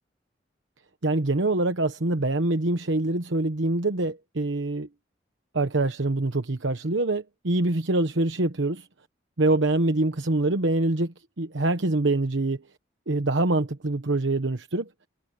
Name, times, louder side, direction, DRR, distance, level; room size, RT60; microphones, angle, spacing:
voice 1, 1.0-4.9 5.5-8.9 9.4-12.6 13.1-14.9, right 2 dB, 80° right, 1.1 m, -25 dB
head